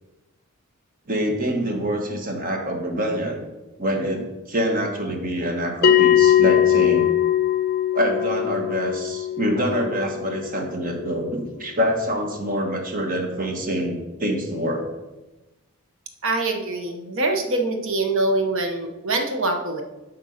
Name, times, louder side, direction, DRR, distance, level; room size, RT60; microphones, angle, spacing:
voice 1, 1.1-3.4 3.8-7.1 7.9-14.8, equal, 40° right, 3 dB, 1.3 m, -25 dB
Bell, 5.8-10.9, left 10 dB, 45° left, 0.5 m, -20 dB
voice 2, 16.2-19.8, right 2 dB, 60° right, 4 dB, 1.1 m, -24 dB
8.3 x 4.5 x 6.4 m, 1.1 s
head